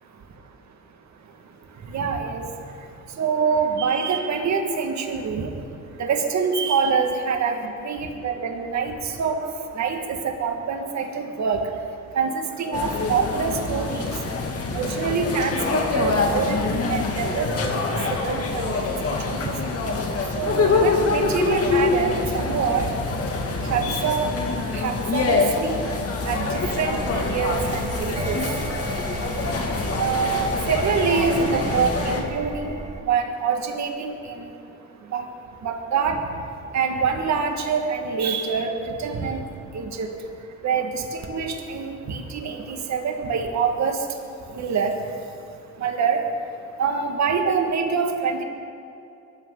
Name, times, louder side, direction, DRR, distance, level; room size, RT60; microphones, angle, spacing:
voice 1, 1.9-2.4 3.2-5.5 6.0-9.4 9.8-11.6 12.1-14.1 14.7-18.7 19.0-19.5 20.3-22.9 23.7-24.3 24.7-25.9 26.3-28.4 30.0-32.8 33.1-34.4 35.1-35.3 35.6-36.2 36.7-39.4 39.7-40.1 40.6-44.0 44.5-44.9 45.8-46.2 46.8-48.4, right 5 dB, 65° right, 3 dB, 2.1 m, -25 dB
sound 1, 12.7-32.2, left 3 dB, 50° left, 2.4 m, -25 dB
sound 2, 26.5-33.0, right 3 dB, 20° right, 1.2 m, -34 dB
23.5 x 14.0 x 4.1 m, 2.6 s
cardioid pair, 90°, 30 cm